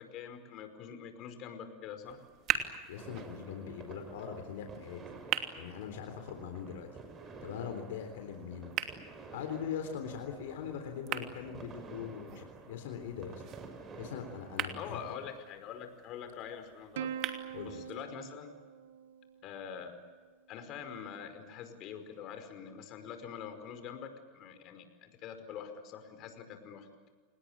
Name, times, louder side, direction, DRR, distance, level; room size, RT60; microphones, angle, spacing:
voice 1, 0.0-2.2 14.7-17.2 17.6-18.5 19.4-20.0 20.5-26.9, left 7 dB, 50° left, 8 dB, 5.1 m, -45 dB
sound 1, 2.0-18.0, right 10 dB, 45° right, 2.8 m, -42 dB
voice 2, 2.9-5.2 5.6-6.9 7.4-8.7 9.3-13.4 14.0-15.0 17.5-17.8, left 7 dB, 80° left, 5 dB, 3.7 m, -41 dB
sound 2, 3.0-15.1, right 4 dB, 30° right, 6.3 m, -50 dB
Plucked string instrument, 17.0-19.7, right 8 dB, 80° right, 1.5 m, -43 dB
29.0 x 20.0 x 8.9 m, 1.5 s
supercardioid pair, 110°, 0 cm